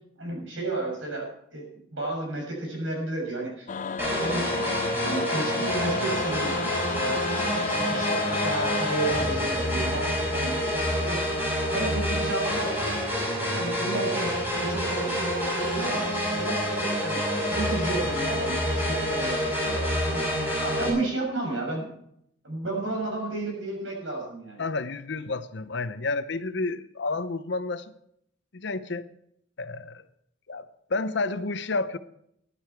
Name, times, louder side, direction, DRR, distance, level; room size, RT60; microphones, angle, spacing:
voice 1, 0.2-4.5 5.0-6.6 6.9-7.3 7.7-11.2 11.7-13.0 13.5-20.2 20.5-21.9 22.4-24.6, right 2 dB, 80° right, 6.6 m, -32 dB
sound 1, 3.7-9.3, left 4 dB, 40° left, 0.5 m, -31 dB
sound 2, 4.0-20.9, equal, 10° right, 5.8 m, -27 dB
voice 2, 24.6-27.9 28.5-29.1 29.6-30.0 30.5-32.0, left 3 dB, 65° left, 0.8 m, -30 dB
15.5 x 12.0 x 4.6 m
head